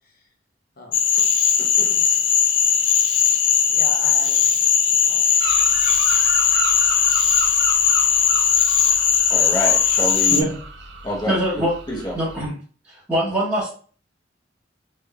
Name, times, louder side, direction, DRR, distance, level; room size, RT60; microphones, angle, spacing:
Cricket / Frog, 0.9-10.4, left 7 dB, 70° left, 0.4 m, -18 dB
voice 1, 1.6-2.0 3.7-5.2, left 2 dB, 55° left, 1 dB, 0.9 m, -38 dB
sound 1, 5.4-12.5, right 4 dB, 65° right, 0.5 m, -33 dB
voice 2, 9.3-10.5 11.0-12.1, equal, 25° left, -2 dB, 0.9 m, -27 dB
voice 3, 11.3-11.8 12.1-12.6 12.8-13.7, right 1 dB, 10° right, -10 dB, 1.1 m, -23 dB
3.4 x 3.1 x 2.4 m, 0.41 s
head